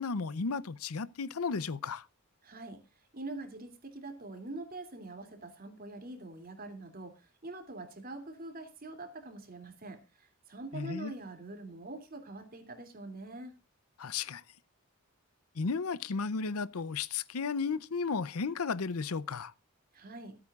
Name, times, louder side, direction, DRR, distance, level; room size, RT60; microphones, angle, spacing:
voice 1, 0.0-2.1 10.7-11.1 14.0-14.4 15.5-19.5, left 5 dB, 80° left, 0.7 m, -34 dB
voice 2, 2.4-2.8 3.1-13.5 19.9-20.4, right 2 dB, 40° right, 2.8 m, -44 dB
23.5 x 8.6 x 2.4 m
head